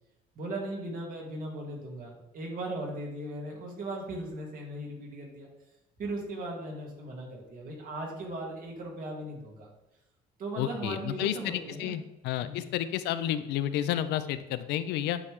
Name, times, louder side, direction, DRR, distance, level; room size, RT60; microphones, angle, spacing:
voice 1, 0.4-5.5 6.0-9.7 10.4-12.1 12.4-12.7, right 1 dB, 55° right, -1 dB, 1.9 m, -38 dB
voice 2, 10.6-15.2, left 11 dB, 85° left, 12 dB, 0.5 m, -31 dB
9.5 x 3.6 x 3.2 m, 0.95 s
cardioid pair, 110°, 17 cm